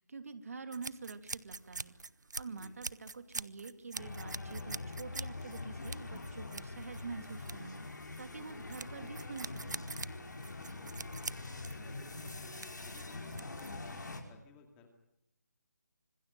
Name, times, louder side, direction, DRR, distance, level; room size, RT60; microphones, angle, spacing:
voice 1, 0.0-1.9 2.4-7.8 8.2-9.8, right 4 dB, 55° right, 9 dB, 2.7 m, -46 dB
sound 1, 0.7-13.9, right 3 dB, 85° right, 0.9 m, -45 dB
sound 2, 3.9-14.2, left 3 dB, 90° left, 5.6 m, -44 dB
voice 2, 10.8-11.2 11.6-14.9, left 4 dB, 10° left, 4 dB, 2.2 m, -60 dB
26.0 x 21.0 x 9.1 m, 0.80 s
figure-of-eight pair, 170°, 10 cm